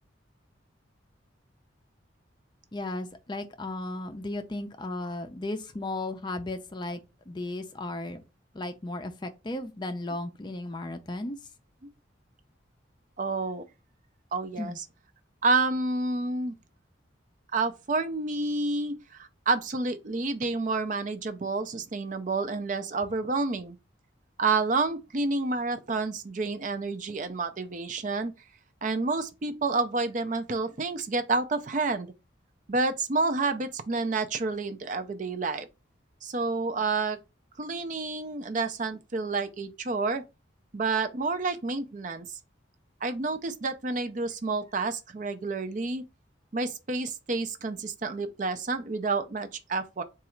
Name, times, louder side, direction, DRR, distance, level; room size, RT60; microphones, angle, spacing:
voice 1, 2.7-7.0 7.3-8.2 8.5-11.4 14.6-14.8, left 2 dB, 25° left, 0.4 m, -35 dB
voice 2, 13.2-13.6 14.3-14.8 15.4-16.5 17.5-23.8 24.4-28.3 28.8-32.1 32.7-35.7 36.2-37.2 37.6-40.2 40.7-42.4 43.0-46.0 46.5-50.0, right 3 dB, 40° right, 0.5 m, -29 dB
4.0 x 2.4 x 4.4 m
head